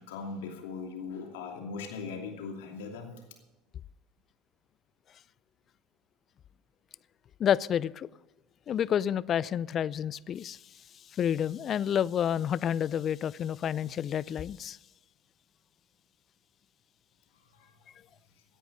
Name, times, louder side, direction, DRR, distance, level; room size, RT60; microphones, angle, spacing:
voice 1, 0.0-3.1 17.4-17.7, left 4 dB, 75° left, 2.7 m, -40 dB
voice 2, 7.4-8.1 8.7-10.6 11.1-14.8, left 9 dB, 45° left, 0.4 m, -29 dB
17.0 x 10.0 x 5.5 m
hypercardioid pair, 75°, 0 cm